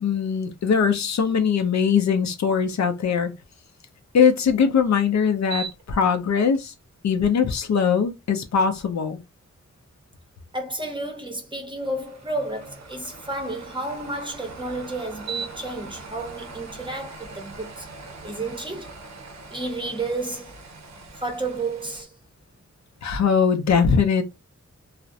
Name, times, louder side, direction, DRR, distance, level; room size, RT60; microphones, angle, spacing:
voice 1, 0.0-3.3 4.1-6.7 7.0-9.2 23.0-24.2, left 6 dB, 70° left, 0.5 m, -21 dB
sound 1, 5.4-6.0 6.5-6.6 11.8-22.0, right 4 dB, 70° right, 0.6 m, -40 dB
voice 2, 10.5-17.9 18.2-18.9 19.5-20.5 21.1-22.1, right 2 dB, 15° right, 0.6 m, -31 dB
2.4 x 2.0 x 2.6 m
wide cardioid pair, 95°, 29 cm